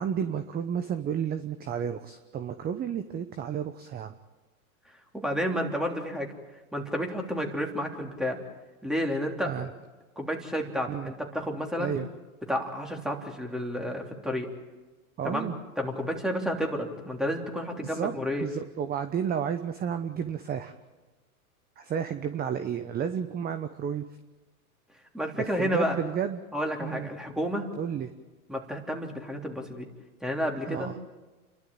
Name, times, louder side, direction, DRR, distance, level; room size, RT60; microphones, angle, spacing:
voice 1, 0.0-4.1 9.5-9.7 10.9-11.1 11.8-12.1 15.2-15.6 17.8-18.1 18.4-20.7 21.8-24.0 25.6-26.4 26.8-27.1 27.8-28.1 30.7-30.9, right 8 dB, 20° right, 10 dB, 1.0 m, -31 dB
voice 2, 5.1-6.3 6.7-8.4 8.8-9.5 10.2-11.9 12.5-14.5 15.2-18.5 25.1-26.0 26.5-27.7 28.5-29.9 30.2-30.9, equal, ahead, 1 dB, 3.2 m, -31 dB
30.0 x 12.0 x 8.9 m, 1.2 s
hypercardioid pair, 120°, 43 cm